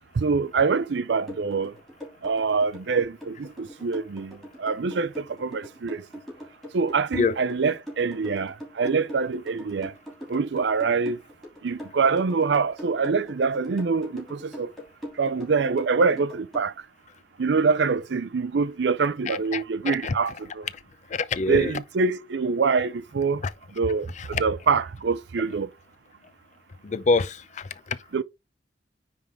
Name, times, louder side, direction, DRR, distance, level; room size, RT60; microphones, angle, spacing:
voice 1, 0.2-1.7 2.2-6.0 6.7-9.9 10.3-11.2 11.6-14.7 15.2-16.7 17.4-20.7 21.5-23.4 23.8-25.7 28.1-28.2, right 4 dB, 80° right, 0.5 m, -25 dB
sound 1, 1.3-16.7, equal, ahead, 2.9 m, -41 dB
voice 2, 19.3-20.1 21.1-21.7 24.2-24.4 26.8-28.0, left 4 dB, 45° left, 0.5 m, -26 dB
9.5 x 3.6 x 3.6 m
head